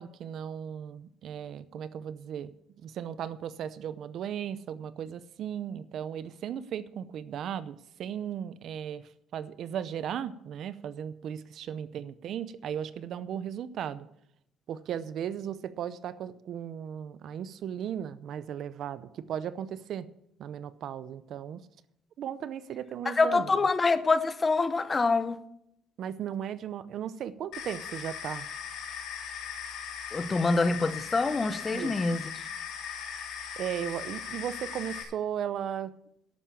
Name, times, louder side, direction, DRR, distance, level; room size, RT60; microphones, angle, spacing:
voice 1, 0.0-9.0 9.3-14.1 14.7-20.1 20.4-21.7 22.2-23.7 26.0-28.4 31.7-32.0 33.6-35.9, right 9 dB, 55° right, 0.6 m, -36 dB
voice 2, 23.1-25.4 30.1-32.2, left 3 dB, 20° left, 0.7 m, -25 dB
sound 1, 27.5-35.0, left 7 dB, 75° left, 3.1 m, -39 dB
11.5 x 8.6 x 7.0 m
cardioid pair, 145°, 0 cm